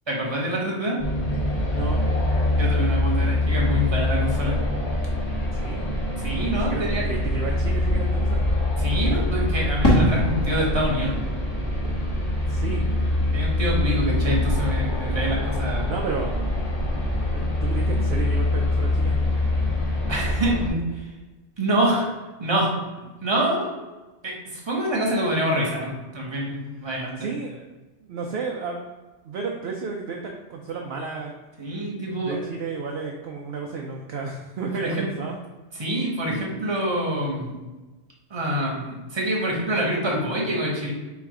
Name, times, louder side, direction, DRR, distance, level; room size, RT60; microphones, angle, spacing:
voice 1, 0.1-1.0 2.5-4.6 6.2-7.0 8.8-11.2 13.3-15.9 20.1-21.1 21.6-22.1 22.4-22.7 23.2-23.7 24.2-27.3 31.6-32.4 34.8-35.1 35.8-37.5 38.3-40.9, right 1 dB, 25° right, -2 dB, 1.0 m, -26 dB
sound 1, 1.0-20.7, left 1 dB, 45° left, 0.8 m, -24 dB
voice 2, 1.7-2.0 5.5-5.9 6.4-8.4 12.5-13.0 15.9-16.4 17.3-19.2 27.2-27.7 28.0-28.9 29.2-30.2 30.5-31.3 32.1-35.4, right 4 dB, 65° right, 0 dB, 0.7 m, -32 dB
Fireworks, 9.8-14.2 14.4-15.2, left 1 dB, 20° left, 0.9 m, -27 dB
3.4 x 3.1 x 4.8 m, 1.2 s
omnidirectional pair, 1.3 m